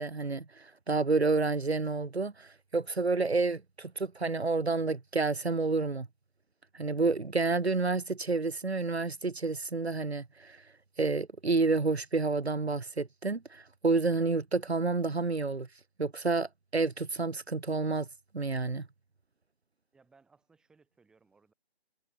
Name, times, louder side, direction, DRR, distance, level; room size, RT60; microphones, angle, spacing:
voice 1, 0.0-6.1 6.7-10.6 11.0-15.7 16.0-18.1 18.3-18.9, right 3 dB, 75° right, 1.2 m, -29 dB
voice 2, 19.9-21.5, right 4 dB, ahead, 7.1 m, -64 dB
figure-of-eight pair, 160°, 32 cm